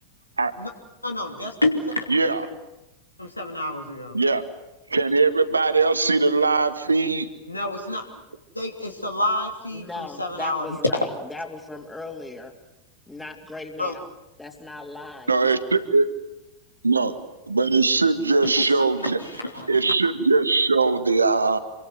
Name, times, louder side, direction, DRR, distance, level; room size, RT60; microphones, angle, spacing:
voice 1, 1.0-2.0 3.2-4.2 7.5-8.0 8.5-10.7 13.8-13.9 18.6-18.7 19.0-19.9, left 1 dB, 85° left, 3 dB, 3.1 m, -28 dB
voice 2, 2.1-2.5 4.1-4.4 4.9-7.3 15.3-16.1 16.8-17.2 17.5-19.2 19.7-21.6, right 3 dB, 80° right, 11 dB, 1.8 m, -20 dB
voice 3, 9.7-12.5 13.1-14.1 14.4-15.4, left 2 dB, 10° left, 2 dB, 3.2 m, -37 dB
27.5 x 24.0 x 8.0 m, 0.99 s
figure-of-eight pair, 90°, 0 cm